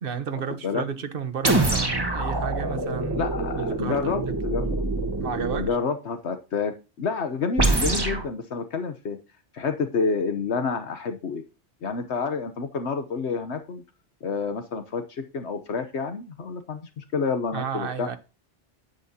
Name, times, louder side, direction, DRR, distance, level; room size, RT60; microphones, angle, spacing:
voice 1, 0.0-3.3 3.6-4.3 5.2-5.8 17.5-18.2, right 7 dB, 55° right, 1.2 m, -32 dB
sound 1, 1.4-5.7 7.6-8.3, right 2 dB, 20° right, 1.4 m, -25 dB
voice 2, 3.1-4.8 5.5-9.2 9.5-11.4 11.8-13.8 14.2-18.1, left 5 dB, 70° left, 1.2 m, -29 dB
10.5 x 9.7 x 2.8 m
omnidirectional pair, 1.2 m